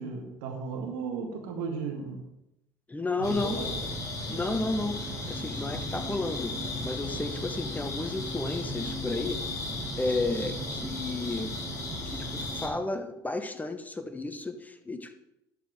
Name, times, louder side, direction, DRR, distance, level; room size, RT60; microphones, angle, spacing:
voice 1, 0.0-2.2 3.2-3.9, right 5 dB, 75° right, 3 dB, 1.8 m, -35 dB
voice 2, 2.9-3.6 4.3-6.6 6.8-9.4 10.0-11.6 12.1-15.1, left 2 dB, 15° left, 8 dB, 1.1 m, -32 dB
sound 1, 3.2-12.7, left 2 dB, 35° left, 3.4 m, -35 dB
sound 2, 3.8-4.1 4.6-8.1 8.6-12.1 12.6-12.8, right 5 dB, 50° right, 2.0 m, -48 dB
12.5 x 4.7 x 4.8 m, 0.87 s
hypercardioid pair, 65°, 10 cm